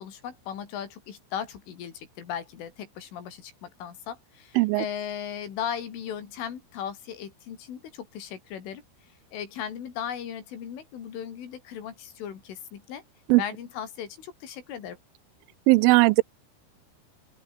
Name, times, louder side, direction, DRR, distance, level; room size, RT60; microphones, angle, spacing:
voice 1, 0.0-8.8 9.3-13.0 13.4-15.0, left 8 dB, 90° left, 6.1 m, -37 dB
voice 2, 15.7-16.2, right 23 dB, 90° right, 3.2 m, -18 dB
open air
omnidirectional pair, 5.5 m